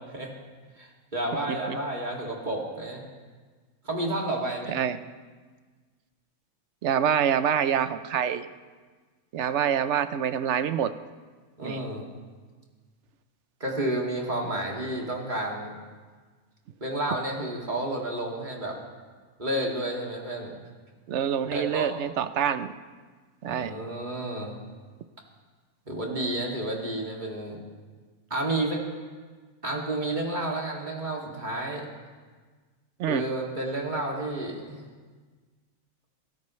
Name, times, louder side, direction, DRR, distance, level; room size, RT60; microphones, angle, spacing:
voice 1, 0.8-3.0 3.8-4.7 11.6-12.0 13.6-15.7 16.8-18.8 19.4-20.6 21.5-21.9 23.5-24.6 25.9-27.6 28.3-28.8 29.6-31.9 33.1-34.9, right 1 dB, 35° right, -2 dB, 2.6 m, -31 dB
voice 2, 6.8-8.5 9.3-10.9 11.6-11.8 21.1-22.7 23.4-23.7 33.0-33.2, right 8 dB, 60° right, 12 dB, 0.9 m, -26 dB
22.5 x 17.5 x 3.2 m, 1.4 s
omnidirectional pair, 1.5 m